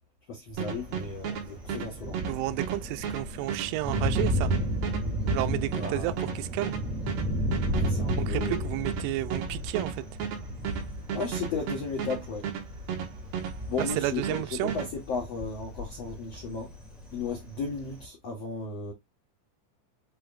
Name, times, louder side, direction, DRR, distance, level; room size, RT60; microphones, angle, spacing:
voice 1, 0.3-2.1 5.8-6.1 7.7-8.7 11.1-12.4 13.7-16.7 17.1-18.9, left 4 dB, 75° left, 1.5 m, -35 dB
Thunder, 0.5-18.0, equal, ahead, 0.6 m, -33 dB
sound 1, 0.6-13.5 13.8-14.9, right 8 dB, 65° right, 3.7 m, -34 dB
voice 2, 2.3-4.5 5.3-6.8 8.2-10.1 13.8-14.7, right 17 dB, 85° right, 3.0 m, -31 dB
8.1 x 4.6 x 2.5 m
omnidirectional pair, 5.4 m